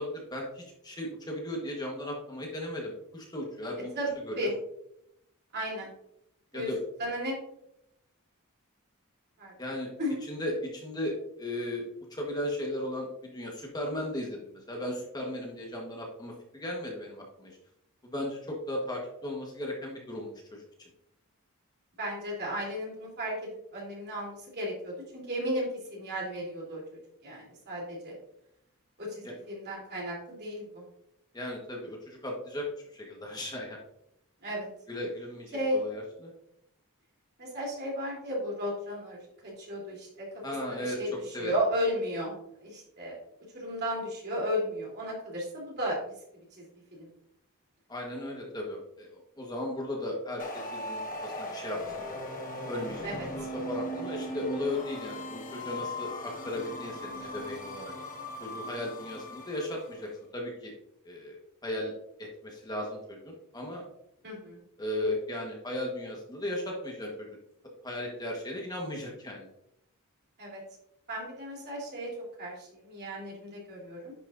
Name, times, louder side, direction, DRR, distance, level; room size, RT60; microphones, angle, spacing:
voice 1, 0.0-3.9 4.2-4.5 6.5-6.8 9.6-9.9 10.2-11.8 12.1-17.6 18.0-20.6 29.2-29.3 31.3-33.8 34.9-36.3 40.4-41.0 41.3-41.5 47.9-52.0 52.7-53.1 53.4-57.9 58.4-60.7 61.0-61.9 62.2-63.8 64.8-67.4 67.8-69.5, left 1 dB, 20° left, -1 dB, 1.2 m, -36 dB
voice 2, 5.5-5.9 6.5-6.7 7.0-7.3 9.4-9.5 10.0-10.2 22.0-26.8 27.2-28.1 29.0-30.9 34.4-34.7 35.5-35.8 37.4-40.3 40.7-43.2 43.5-46.0 46.6-46.7 46.9-47.1 53.0-53.3 64.2-64.6 70.4-70.6 71.1-72.1 72.4-74.1, equal, 50° right, -3 dB, 3.2 m, -34 dB
sound 1, 50.4-60.0, left 1 dB, 40° left, 1.4 m, -39 dB
10.5 x 5.9 x 2.6 m, 0.79 s
head